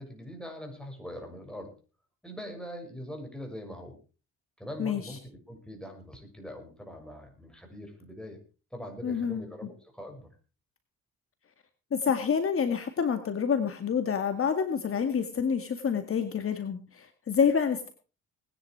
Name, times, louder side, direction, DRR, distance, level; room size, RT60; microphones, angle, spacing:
voice 1, 0.0-1.7 2.2-4.0 4.6-8.4 8.7-10.3, equal, 5° left, 3 dB, 6.5 m, -42 dB
voice 2, 4.8-5.2 9.0-9.7 11.9-17.9, left 6 dB, 45° left, 8 dB, 2.0 m, -28 dB
19.5 x 10.5 x 4.8 m, 0.35 s
cardioid pair, 90°, 30 cm